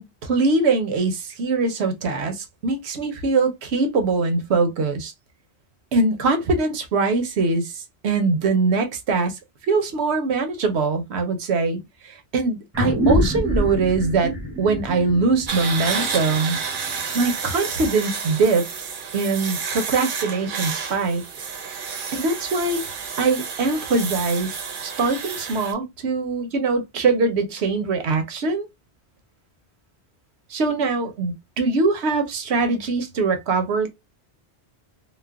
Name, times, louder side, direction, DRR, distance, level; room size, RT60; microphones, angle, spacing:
voice 1, 0.0-5.1 5.9-9.4 9.7-11.8 12.0-14.3 14.6-16.6 17.1-18.9 19.1-21.5 22.1-22.8 23.2-24.5 24.8-28.7 30.5-33.9, right 3 dB, 80° right, 1.0 m, -22 dB
sound 1, 12.7-17.6, equal, 15° right, 0.6 m, -26 dB
sound 2, 15.5-25.7, right 6 dB, 60° right, 0.7 m, -30 dB
3.1 x 2.0 x 2.3 m
omnidirectional pair, 1.1 m